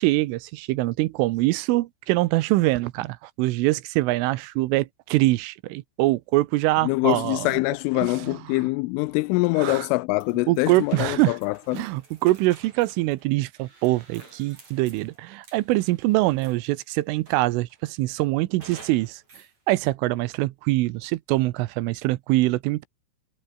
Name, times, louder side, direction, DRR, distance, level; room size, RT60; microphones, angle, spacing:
voice 1, 0.0-7.5 8.0-8.4 9.6-9.9 10.5-11.3 11.7-19.2 19.7-22.9, right 19 dB, 80° right, 3.3 m, -24 dB
voice 2, 6.8-11.9, left 23 dB, 85° left, 2.9 m, -24 dB
sound 1, 10.2-16.8 17.3-17.8 18.6-19.5, right 3 dB, 35° right, 8.2 m, -50 dB
omnidirectional pair, 5.9 m